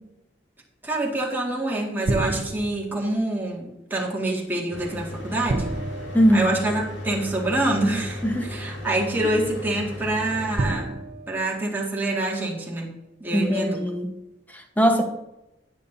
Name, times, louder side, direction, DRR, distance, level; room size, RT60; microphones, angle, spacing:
voice 1, 0.8-5.8 6.3-11.0 11.3-12.9 13.2-13.8, right 1 dB, 10° right, -3 dB, 2.0 m, -26 dB
sound 1, 2.1-3.0 5.5-7.1 8.3-8.4 10.6-12.3, right 2 dB, 50° right, 0.6 m, -31 dB
Mechanical fan, 4.7-10.7, left 1 dB, 80° left, 2.5 m, -35 dB
voice 2, 6.1-6.5 8.2-8.5 13.3-14.1 14.8-15.0, equal, 10° left, 4 dB, 1.1 m, -20 dB
10.0 x 9.9 x 2.7 m, 0.93 s
head